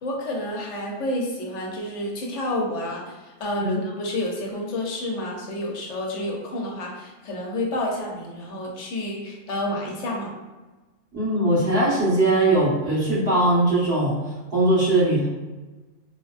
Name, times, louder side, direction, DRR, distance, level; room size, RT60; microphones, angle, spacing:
voice 1, 0.0-10.3, left 1 dB, 85° left, -1 dB, 1.1 m, -29 dB
voice 2, 11.1-14.2 14.5-15.3, right 1 dB, 55° right, -10 dB, 1.7 m, -20 dB
4.4 x 2.1 x 2.4 m, 1.2 s
omnidirectional pair, 1.2 m